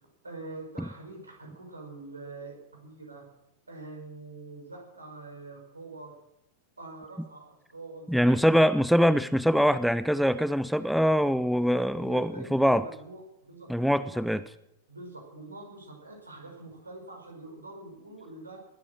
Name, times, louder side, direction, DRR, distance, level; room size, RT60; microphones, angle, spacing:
voice 1, 0.2-3.3 3.7-6.2 6.8-8.5 8.7-8.9 11.7-14.4 14.9-18.6, right 2 dB, 80° right, 1 dB, 5.1 m, -45 dB
voice 2, 8.1-12.9 13.7-14.4, equal, ahead, 15 dB, 0.5 m, -23 dB
20.5 x 8.6 x 6.5 m, 0.83 s
figure-of-eight pair, 90°, 0 cm